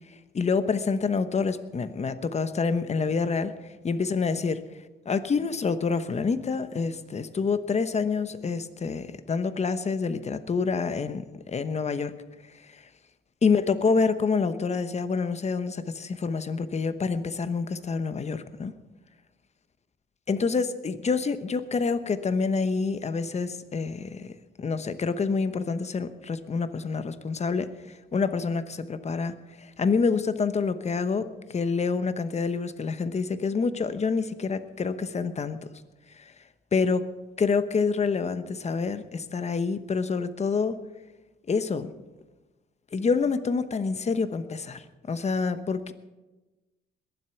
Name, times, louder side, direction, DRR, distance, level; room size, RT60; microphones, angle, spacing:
voice 1, 0.3-3.5 3.8-4.6 5.1-12.1 12.7-12.8 13.4-18.7 20.3-24.3 24.6-35.6 36.2-36.3 36.7-37.1 37.4-40.8 41.5-41.9 42.9-45.9, left 5 dB, 35° left, 12 dB, 1.0 m, -27 dB
21.5 x 7.8 x 5.9 m, 1.1 s
cardioid pair, 90°, 20 cm